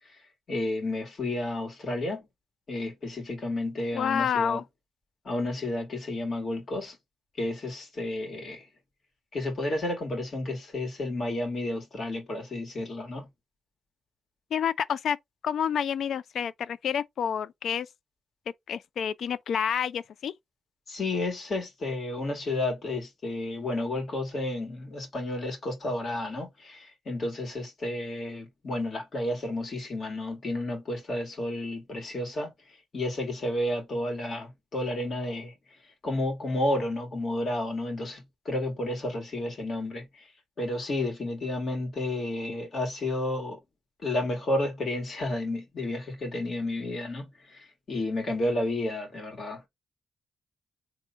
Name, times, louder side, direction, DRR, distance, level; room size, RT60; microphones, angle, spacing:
voice 1, 0.5-2.3 2.7-4.6 5.3-7.0 7.4-8.7 9.3-13.3 20.9-32.5 32.9-35.5 36.0-40.1 40.6-43.6 44.0-49.6, left 1 dB, 50° left, 2.4 m, -31 dB
voice 2, 3.9-4.6 14.5-15.2 15.4-17.9 18.7-20.3, left 8 dB, 70° left, 0.4 m, -28 dB
3.5 x 2.8 x 3.4 m
cardioid pair, 105°, 0 cm